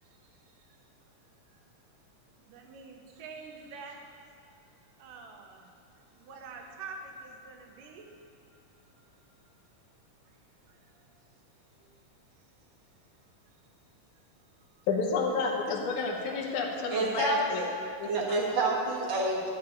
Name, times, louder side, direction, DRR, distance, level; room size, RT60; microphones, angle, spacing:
voice 1, 0.0-0.7 2.5-4.2 5.0-5.8 6.1-8.1 8.5-8.6 8.9-9.0 10.7-11.0 11.8-11.9 13.5-13.6 14.8-14.9, right 4 dB, 85° right, 2 dB, 2.6 m, -47 dB
voice 2, 14.9-17.7 18.0-18.1, left 4 dB, 70° left, 0 dB, 2.4 m, -30 dB
voice 3, 16.9-17.7 18.0-19.5, right 2 dB, 50° right, -3 dB, 1.5 m, -28 dB
12.5 x 4.7 x 8.6 m, 2.4 s
omnidirectional pair, 3.8 m